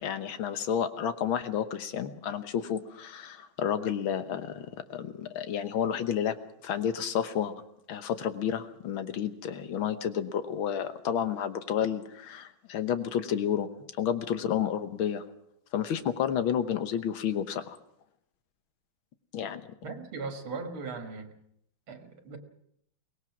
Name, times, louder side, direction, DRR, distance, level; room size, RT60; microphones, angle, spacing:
voice 1, 0.0-6.3 6.6-7.5 7.9-13.7 14.0-15.2 15.7-17.8 19.3-19.6, left 8 dB, 75° left, 11 dB, 1.9 m, -30 dB
voice 2, 19.8-21.4 21.9-22.4, right 4 dB, 90° right, 6 dB, 2.7 m, -38 dB
23.5 x 18.5 x 6.0 m, 0.74 s
omnidirectional pair, 2.2 m